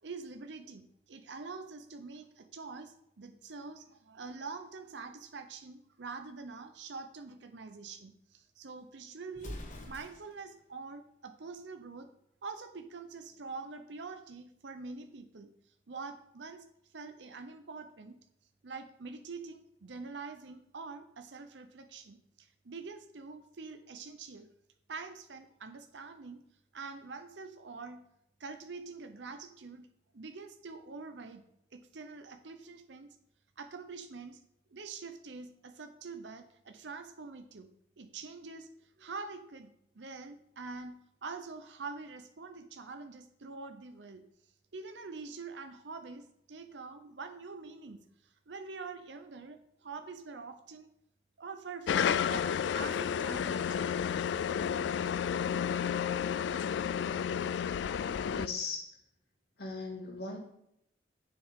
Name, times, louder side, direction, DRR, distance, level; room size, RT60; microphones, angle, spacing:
voice 1, 0.0-9.6 9.9-12.1 12.4-15.5 15.9-16.7 16.9-18.2 18.6-24.5 24.9-26.4 26.7-28.1 28.4-29.9 30.1-31.4 31.7-33.1 33.6-34.4 34.7-37.7 38.0-39.7 39.9-44.2 44.7-50.9 51.4-54.0, right 4 dB, 80° right, 7 dB, 0.7 m, -45 dB
Explosion, 9.3-10.5, left 1 dB, 45° left, 1.4 m, -44 dB
sound 1, 51.9-58.5, left 8 dB, 80° left, 0.3 m, -31 dB
voice 2, 58.3-58.9 59.6-60.4, left 3 dB, 60° left, 0 dB, 2.2 m, -38 dB
10.0 x 7.2 x 3.7 m, 0.77 s
head